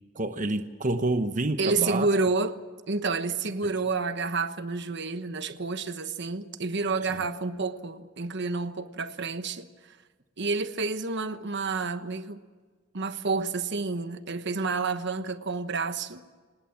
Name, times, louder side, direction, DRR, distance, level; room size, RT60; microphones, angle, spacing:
voice 1, 0.1-2.1 3.6-3.7 7.1-7.2, right 2 dB, 40° right, 1.0 m, -28 dB
voice 2, 1.6-2.6 2.9-10.0 10.4-12.4 12.9-16.2, right 3 dB, 60° right, 1.2 m, -29 dB
26.5 x 20.0 x 7.4 m
head